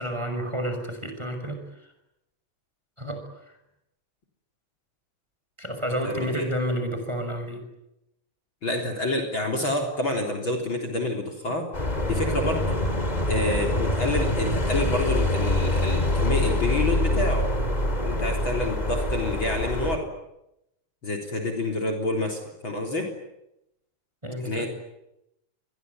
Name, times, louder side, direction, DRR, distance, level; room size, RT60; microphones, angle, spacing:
voice 1, 0.0-1.6 3.0-3.2 5.6-7.6 18.1-18.3 24.2-24.7, equal, 10° right, 6 dB, 5.6 m, -30 dB
voice 2, 6.0-6.5 8.6-11.7 12.1-12.7 13.3-17.5 18.0-20.1 21.0-23.1 24.4-24.7, left 2 dB, 40° left, 3 dB, 4.3 m, -28 dB
sound 1, 11.7-20.0, left 1 dB, 15° left, 2.5 m, -25 dB
27.0 x 22.0 x 9.5 m, 0.85 s
omnidirectional pair, 3.5 m